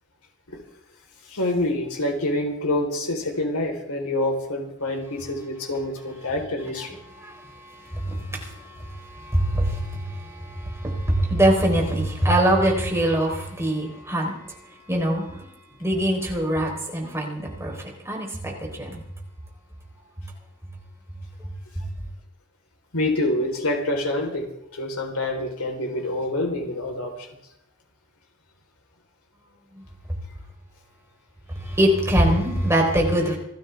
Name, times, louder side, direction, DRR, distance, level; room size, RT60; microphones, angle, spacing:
voice 1, 1.3-7.0 22.9-24.5 24.7-27.3, left 1 dB, 85° left, 2 dB, 4.2 m, -26 dB
voice 2, 7.2-15.5 15.8-19.0 21.8-21.9 31.5-33.4, right 1 dB, 10° right, 0 dB, 4.1 m, -24 dB
27.5 x 13.0 x 3.6 m, 0.80 s
head